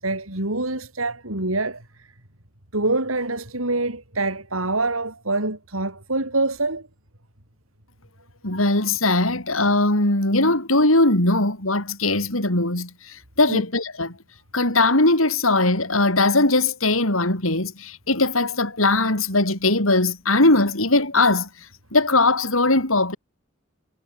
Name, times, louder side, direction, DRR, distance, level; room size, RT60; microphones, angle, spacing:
voice 1, 0.0-2.1 2.7-6.9 13.5-13.6, right 2 dB, 90° right, 7.3 m, -25 dB
voice 2, 8.4-14.1 14.5-21.5 21.9-23.2, left 2 dB, 80° left, 7.7 m, -20 dB
head